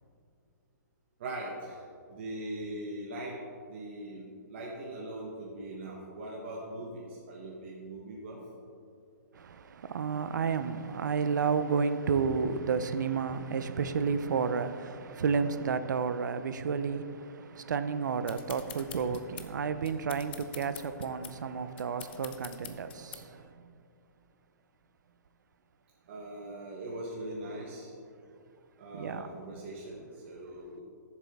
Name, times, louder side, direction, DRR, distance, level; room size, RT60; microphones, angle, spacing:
voice 1, 1.2-1.8 2.1-3.4 3.7-8.4 26.1-28.0 28.8-30.8, right 1 dB, 40° right, 1.3 m, -41 dB
voice 2, 9.3-23.7 28.9-29.3, right 5 dB, 75° right, 0.6 m, -31 dB
sound 1, 18.3-23.5, left 9 dB, 35° left, 0.6 m, -47 dB
13.5 x 7.3 x 3.6 m
hypercardioid pair, 175°, 10 cm